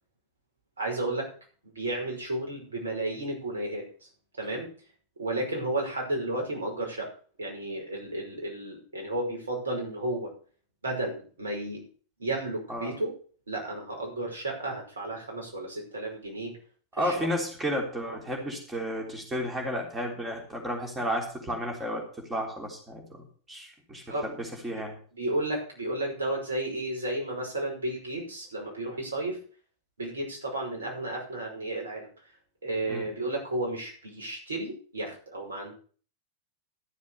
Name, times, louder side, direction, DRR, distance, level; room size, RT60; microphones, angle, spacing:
voice 1, 0.8-1.3 1.6-3.8 4.4-4.7 5.2-7.1 7.4-10.3 10.8-11.8 12.2-13.1 13.5-16.5 17.0-17.1 18.0-18.2 24.1-24.3 25.1-29.4 30.0-32.1 32.6-35.7, right 1 dB, 70° right, 0 dB, 5.6 m, -32 dB
voice 2, 17.0-22.0 22.3-25.0 32.9-33.1, equal, 15° right, 1 dB, 3.6 m, -32 dB
13.0 x 7.3 x 6.8 m, 0.42 s
figure-of-eight pair, 90°, 0 cm